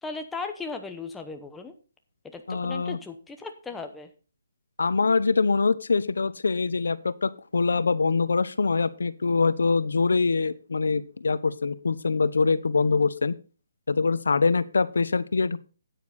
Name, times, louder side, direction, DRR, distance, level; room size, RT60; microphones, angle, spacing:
voice 1, 0.0-1.7 2.3-4.1, left 4 dB, 5° left, 5 dB, 0.9 m, -37 dB
voice 2, 2.5-3.0 4.8-13.3 13.9-15.6, left 4 dB, 90° left, 16 dB, 0.9 m, -24 dB
9.5 x 9.3 x 4.2 m, 0.35 s
hypercardioid pair, 170°, 0 cm